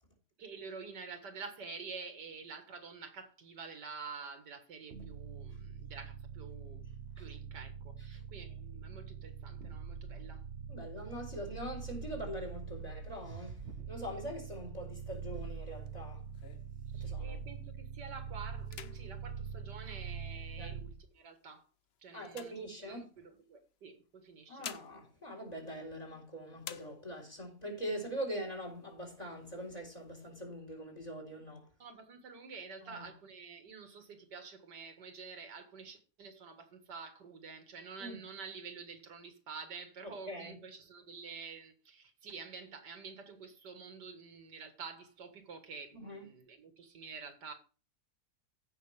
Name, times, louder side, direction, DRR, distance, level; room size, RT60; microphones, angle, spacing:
voice 1, 0.4-6.8 7.2-10.4 16.9-21.6 22.0-22.5 22.9-24.7 31.8-47.5, right 5 dB, 90° right, 2.3 m, -48 dB
sound 1, 4.9-21.1, right 6 dB, 50° right, 1.0 m, -44 dB
voice 2, 10.7-16.2 17.0-17.4 20.6-20.8 22.1-23.1 24.5-31.7 32.9-33.1 38.0-38.2 40.0-40.5 45.9-46.3, equal, 20° left, 3.9 m, -43 dB
sound 2, 15.4-17.5 18.0-18.2 18.6-20.5 21.2-23.3 24.2-26.2 26.6-27.4 27.9-28.0 28.3-28.9 29.4-30.3, left 8 dB, 55° left, 0.7 m, -52 dB
15.5 x 6.0 x 3.3 m
omnidirectional pair, 1.8 m